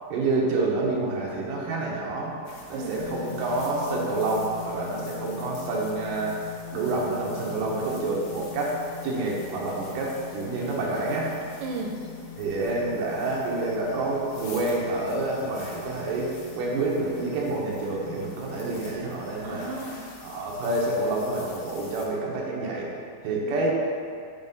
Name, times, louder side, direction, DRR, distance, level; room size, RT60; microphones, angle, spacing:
voice 1, 0.1-2.4 2.7-6.4 6.7-8.8 9.0-11.3 12.4-19.7 20.2-22.9 23.2-23.7, right 2 dB, 70° right, -4 dB, 2.1 m, -28 dB
sound 1, 2.4-22.1, left 3 dB, 80° left, 1.7 m, -47 dB
sound 2, 2.5-19.5, left 9 dB, 60° left, 1.6 m, -43 dB
voice 2, 2.7-3.0 11.6-12.1 19.4-20.0 23.4-23.7, right 3 dB, 85° right, 1 dB, 2.9 m, -35 dB
6.4 x 4.0 x 5.3 m, 2.3 s
omnidirectional pair, 5.1 m